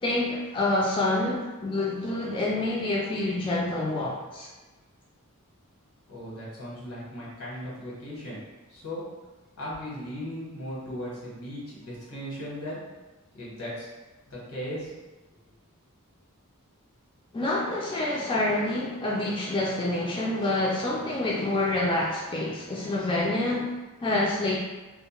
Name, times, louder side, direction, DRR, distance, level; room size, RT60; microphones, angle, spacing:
voice 1, 0.0-4.5 17.3-24.6, left 2 dB, 25° left, -4 dB, 0.3 m, -27 dB
voice 2, 6.1-8.4 8.7-9.0 9.6-12.8 13.3-13.9 14.3-14.9, equal, 90° left, -7 dB, 1.2 m, -37 dB
2.3 x 2.1 x 2.9 m, 1.2 s
head